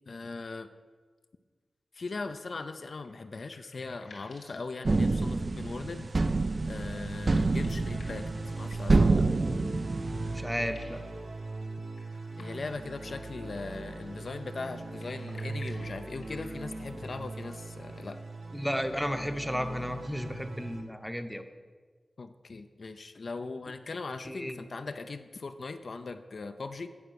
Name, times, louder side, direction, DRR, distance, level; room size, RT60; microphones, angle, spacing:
voice 1, 0.1-0.7 1.9-6.1 6.7-9.3 12.4-18.2 22.2-26.9, left 3 dB, 65° left, 8 dB, 0.4 m, -39 dB
sound 1, 3.0-5.5 7.1-8.4 9.8-9.9 10.1-11.1 11.9-12.9 14.8-16.9, left 3 dB, 85° left, 2.0 m, -55 dB
sound 2, 4.8-10.4, right 3 dB, 50° right, 0.4 m, -27 dB
sound 3, 4.9-20.8, right 3 dB, 75° right, 0.9 m, -40 dB
voice 2, 10.3-11.0 18.5-21.4 24.2-24.6, equal, ahead, 8 dB, 0.7 m, -33 dB
9.1 x 4.8 x 6.4 m, 1.5 s
cardioid pair, 45°, 0 cm